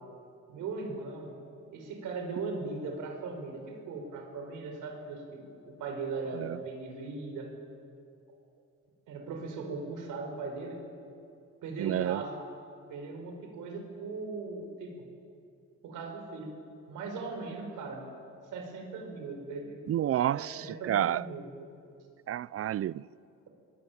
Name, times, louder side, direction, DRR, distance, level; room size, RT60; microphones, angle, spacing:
voice 1, 0.5-1.3 1.7-7.5 9.1-10.8 11.6-12.4 12.9-15.0 15.8-16.5 16.9-18.0 18.5-19.8 20.3-21.5, right 4 dB, 85° right, 5.0 m, -39 dB
voice 2, 11.8-12.2 19.9-21.2 22.3-23.0, right 11 dB, 50° right, 0.5 m, -30 dB
23.0 x 19.0 x 9.2 m
cardioid pair, 90°, 30 cm